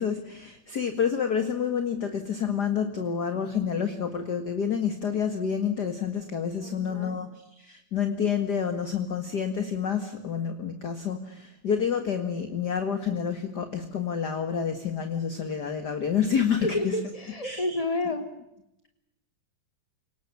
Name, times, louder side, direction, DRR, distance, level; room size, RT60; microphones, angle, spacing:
voice 1, 0.0-7.3 7.6-16.9 17.4-17.8, left 7 dB, 35° left, 7 dB, 2.0 m, -28 dB
voice 2, 6.6-7.2 16.6-18.3, left 2 dB, 10° left, 6 dB, 3.2 m, -30 dB
29.5 x 19.0 x 9.6 m, 0.88 s
omnidirectional pair, 3.7 m